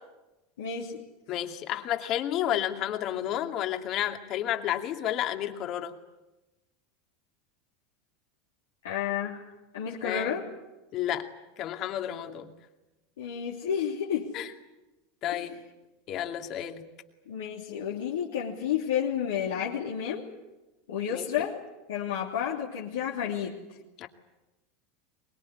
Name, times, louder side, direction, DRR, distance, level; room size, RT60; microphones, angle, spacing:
voice 1, 0.6-1.0 8.8-10.5 13.2-14.3 15.3-15.6 17.3-20.3 20.9-21.6 21.9-23.6, left 8 dB, 80° left, -4 dB, 3.1 m, -31 dB
voice 2, 1.3-5.9 10.0-10.4 10.9-11.3 11.6-12.5 14.3-14.5 15.2-15.6 16.1-16.8 21.1-21.5 24.0-24.1, left 11 dB, 50° left, 6 dB, 2.5 m, -31 dB
24.0 x 21.0 x 10.0 m, 1.0 s
hypercardioid pair, 95°, 0 cm